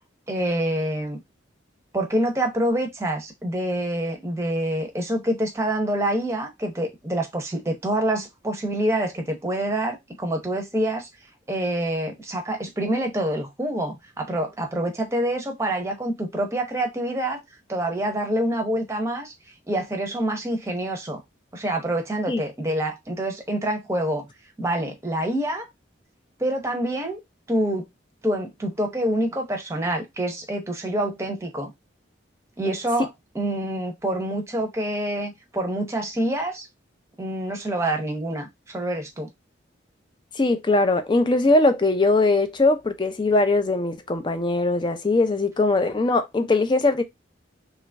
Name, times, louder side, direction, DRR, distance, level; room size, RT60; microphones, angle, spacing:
voice 1, 0.3-1.2 1.9-11.1 11.5-17.4 17.7-19.3 19.7-21.2 21.5-24.3 24.6-25.7 26.4-27.2 27.5-27.8 28.2-31.7 32.6-33.1 33.3-36.7 37.2-39.3, right 1 dB, 15° right, 0.7 m, -26 dB
voice 2, 40.4-47.0, left 2 dB, 25° left, 0.4 m, -21 dB
3.0 x 2.4 x 3.3 m
head